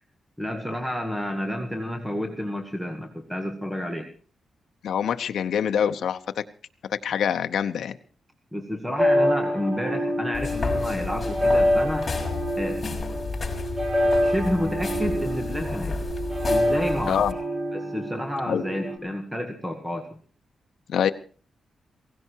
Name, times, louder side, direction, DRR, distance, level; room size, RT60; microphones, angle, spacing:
voice 1, 0.4-4.1 8.5-12.1 12.6-12.9 14.2-16.0 16.5-17.3 17.7-20.1, equal, 5° right, 5 dB, 1.9 m, -30 dB
voice 2, 4.8-6.2 6.9-8.0 17.1-17.3 18.5-18.6 20.9-21.1, left 8 dB, 75° left, 7 dB, 0.8 m, -25 dB
sound 1, 9.0-19.0, equal, 20° right, 3.1 m, -26 dB
sound 2, 10.3-17.3, left 4 dB, 35° left, 5.5 m, -32 dB
17.0 x 16.5 x 4.7 m, 0.41 s
cardioid pair, 95°, 0 cm